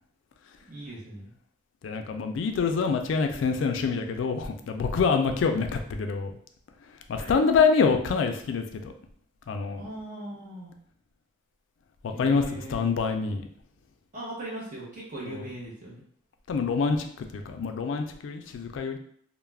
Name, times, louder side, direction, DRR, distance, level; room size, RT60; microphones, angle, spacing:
voice 1, 0.7-1.3 5.5-5.7 7.1-7.4 9.8-10.7 12.1-12.8 14.1-16.0, right 1 dB, 40° right, -5 dB, 0.6 m, -39 dB
voice 2, 1.8-6.3 7.1-8.9 9.5-9.8 12.0-13.4 15.3-15.4 16.5-17.1 17.3-19.0, left 5 dB, 75° left, 6 dB, 0.3 m, -26 dB
2.3 x 2.0 x 3.2 m, 0.65 s
head